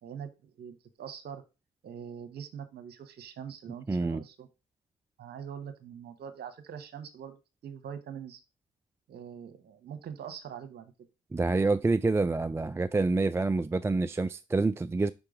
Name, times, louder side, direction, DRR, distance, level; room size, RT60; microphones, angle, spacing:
voice 1, 0.0-1.4 1.8-4.5 5.2-8.4 9.1-10.9, right 8 dB, 65° right, 1.1 m, -43 dB
voice 2, 3.9-4.2 11.3-15.1, right 3 dB, 15° right, 0.3 m, -27 dB
5.4 x 3.7 x 4.9 m
hypercardioid pair, 45°, 18 cm